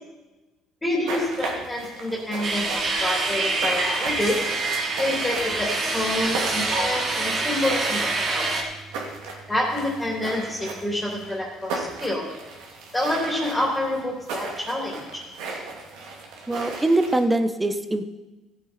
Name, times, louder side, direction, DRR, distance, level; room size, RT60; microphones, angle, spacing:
voice 1, 0.8-4.5 5.0-8.5 9.5-12.3 12.9-15.2, left 1 dB, 15° left, -2 dB, 3.0 m, -27 dB
sound 1, 1.1-17.2, right 3 dB, 80° right, 2.7 m, -36 dB
sound 2, 2.4-8.6, right 3 dB, 45° right, 2.7 m, -26 dB
voice 2, 16.5-18.0, right 2 dB, 10° right, 9 dB, 0.9 m, -22 dB
16.0 x 8.2 x 4.4 m, 1.1 s
cardioid pair, 105°, 0 cm